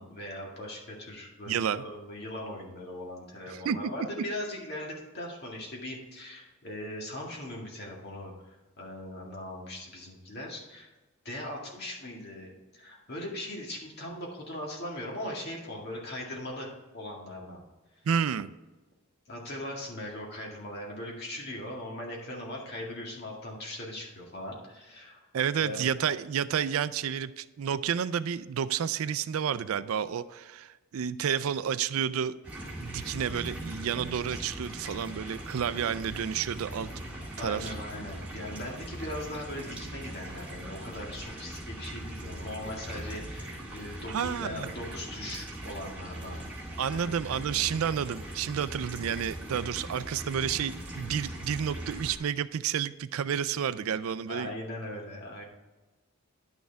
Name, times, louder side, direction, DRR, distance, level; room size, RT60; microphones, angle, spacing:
voice 1, 0.0-10.9 11.2-16.7 16.9-17.6 17.9-18.0 19.3-25.3 25.5-25.8 37.4-46.4 46.9-47.1 54.3-55.4, left 1 dB, 50° left, -2 dB, 2.0 m, -40 dB
voice 2, 1.5-1.8 3.5-3.9 18.1-18.5 25.3-32.3 32.8-36.9 37.4-37.7 44.1-44.7 46.8-54.5, right 8 dB, 75° right, 15 dB, 0.4 m, -30 dB
sound 1, 32.4-52.2, right 1 dB, 5° right, 2.0 m, -40 dB
10.5 x 6.4 x 3.5 m, 1.1 s
head